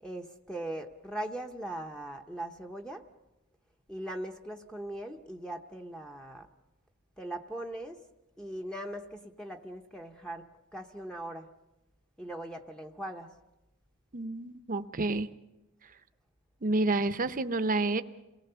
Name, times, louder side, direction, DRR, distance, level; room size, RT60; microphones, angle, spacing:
voice 1, 0.0-3.0 3.9-6.5 7.2-8.0 8.4-10.5 10.7-11.5 12.2-13.3, right 1 dB, 5° left, 3 dB, 0.9 m, -40 dB
voice 2, 14.1-15.3 16.6-18.0, right 2 dB, 40° right, 12 dB, 0.7 m, -29 dB
27.5 x 18.5 x 6.9 m, 1.0 s
head